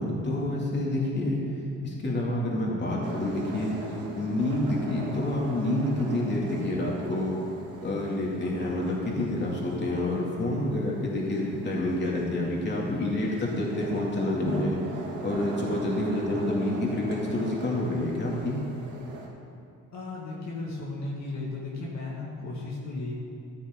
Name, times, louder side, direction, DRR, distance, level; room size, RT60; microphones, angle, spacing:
voice 1, 0.0-1.4 1.8-3.8 4.1-7.4 7.8-14.8 15.2-18.6, left 1 dB, 35° left, -4 dB, 2.9 m, -28 dB
sound 1, 3.0-19.3, right 3 dB, 80° right, 2.4 m, -41 dB
voice 2, 19.9-23.1, left 2 dB, 65° left, -4 dB, 2.2 m, -35 dB
14.5 x 8.9 x 4.0 m, 2.7 s
cardioid pair, 90°, 30 cm